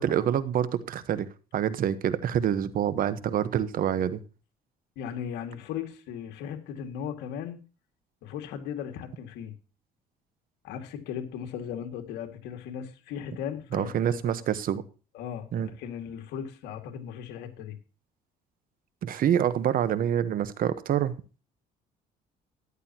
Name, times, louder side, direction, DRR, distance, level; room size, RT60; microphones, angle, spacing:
voice 1, 0.0-4.2 13.7-14.8 15.5-15.7 19.0-21.4, right 9 dB, 60° right, 15 dB, 1.2 m, -27 dB
voice 2, 5.0-7.6 8.2-9.5 10.6-14.4 15.1-17.8, left 8 dB, 90° left, 5 dB, 2.2 m, -37 dB
13.5 x 11.0 x 2.9 m, 0.34 s
cardioid pair, 110°, 17 cm